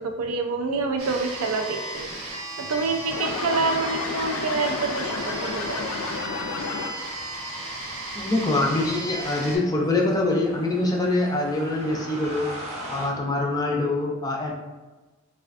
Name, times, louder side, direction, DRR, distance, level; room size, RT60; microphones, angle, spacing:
voice 1, 0.0-5.9, right 3 dB, 90° right, 5 dB, 0.4 m, -27 dB
sound 1, 1.0-9.6, right 2 dB, 70° right, 0.8 m, -35 dB
sound 2, 3.1-7.2, left 4 dB, 85° left, 0.4 m, -31 dB
sound 3, 4.8-13.1, equal, 30° right, 0.7 m, -42 dB
voice 2, 8.1-12.5 12.9-14.5, left 2 dB, 15° left, 0 dB, 0.4 m, -24 dB
3.3 x 2.4 x 2.4 m, 1.2 s
head